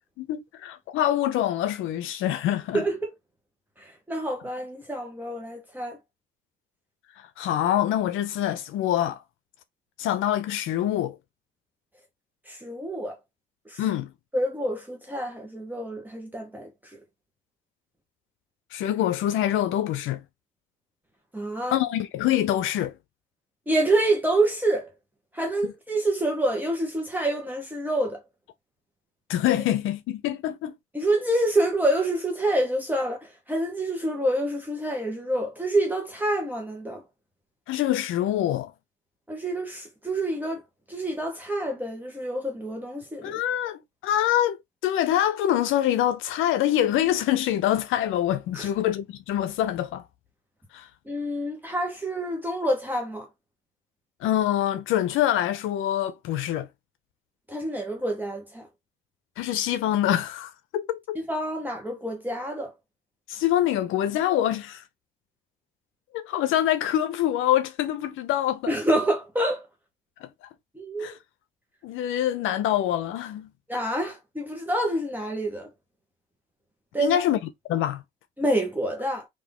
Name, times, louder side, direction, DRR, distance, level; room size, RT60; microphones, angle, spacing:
voice 1, 0.2-2.8 7.4-9.2 10.0-11.2 13.8-14.1 18.7-20.2 21.7-22.9 29.3-30.7 37.7-38.7 43.2-50.0 50.7-50.9 54.2-56.7 59.4-61.2 63.3-64.8 66.1-68.7 70.2-70.5 71.0-71.2 71.8-73.5 77.0-77.4 77.7-78.0, left 12 dB, 90° left, 0.6 m, -25 dB
voice 2, 2.7-3.1 3.8-6.0 12.5-13.2 13.7-13.8 14.3-16.7 21.3-21.8 23.7-24.9 25.3-28.2 30.9-37.0 39.3-40.6 40.9-43.4 48.5-48.7 51.1-53.3 57.5-58.7 61.3-62.7 68.7-69.7 70.7-71.2 73.7-75.7 76.9-77.2 78.4-79.3, right 1 dB, 10° right, 1.0 m, -27 dB
3.5 x 2.7 x 3.4 m
cardioid pair, 90°, 20 cm